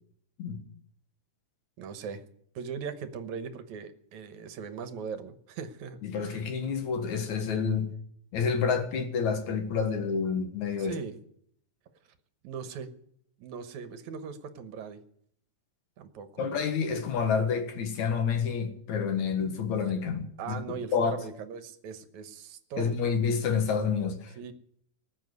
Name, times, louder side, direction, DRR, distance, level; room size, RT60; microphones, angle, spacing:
voice 1, 1.8-2.2 2.6-6.4 10.8-11.2 12.4-12.9 13.4-15.0 16.0-16.5 20.4-22.9 24.4-24.5, right 6 dB, 75° right, 2.5 m, -39 dB
voice 2, 6.0-7.9 8.3-11.0 16.4-20.6 20.9-21.2 22.8-24.3, left 6 dB, 70° left, 3.0 m, -28 dB
19.0 x 7.5 x 9.5 m
omnidirectional pair, 3.4 m